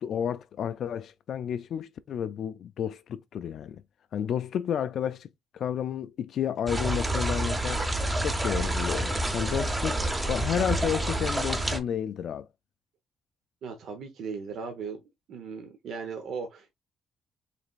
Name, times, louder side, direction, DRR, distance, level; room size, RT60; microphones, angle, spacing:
voice 1, 0.0-3.8 4.1-5.3 5.5-7.9 8.2-10.0 10.3-12.5, left 9 dB, 65° left, 0.3 m, -31 dB
sound 1, 6.7-11.8, right 1 dB, 20° right, 0.9 m, -28 dB
voice 2, 13.6-15.0 15.3-16.7, right 5 dB, 70° right, 0.9 m, -37 dB
5.0 x 3.3 x 2.4 m
cardioid pair, 90°, 0 cm